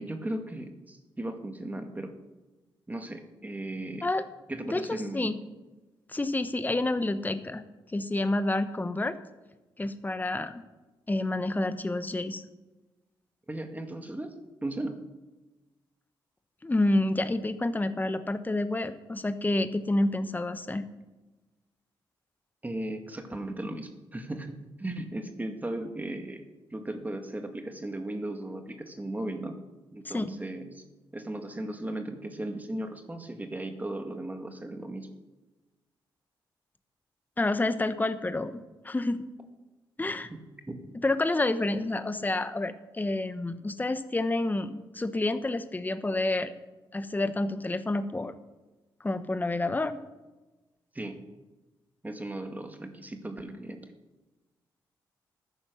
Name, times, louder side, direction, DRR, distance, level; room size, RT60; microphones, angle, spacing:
voice 1, 0.0-2.1 2.9-4.1 4.5-5.4 13.5-14.3 14.6-15.0 22.6-26.4 26.7-29.6 29.9-30.8 31.1-35.1 40.3-40.8 50.9-51.2 52.0-53.8, right 1 dB, 20° right, 5 dB, 2.0 m, -36 dB
voice 2, 4.6-5.4 6.1-7.6 7.9-9.2 9.8-10.6 11.1-12.4 16.6-20.8 30.0-30.3 37.4-39.2 40.0-40.3 41.0-46.5 46.9-48.3 49.0-50.0, left 2 dB, 20° left, 11 dB, 1.0 m, -29 dB
13.5 x 10.0 x 6.3 m, 1.1 s
cardioid pair, 60°, 9 cm